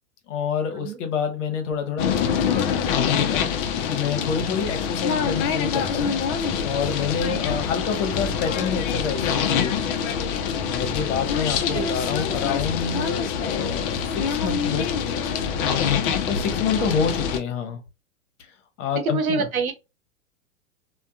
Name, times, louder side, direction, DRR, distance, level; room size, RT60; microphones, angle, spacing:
voice 1, 0.3-3.4 3.9-6.1 6.6-9.9 10.7-15.5 16.2-17.8 18.8-19.4, left 6 dB, 60° left, 0.9 m, -28 dB
sound 1, 2.0-17.4, left 7 dB, 40° left, 0.5 m, -25 dB
voice 2, 19.0-19.7, right 5 dB, 85° right, 0.8 m, -27 dB
2.6 x 2.2 x 2.2 m
hypercardioid pair, 110°, 41 cm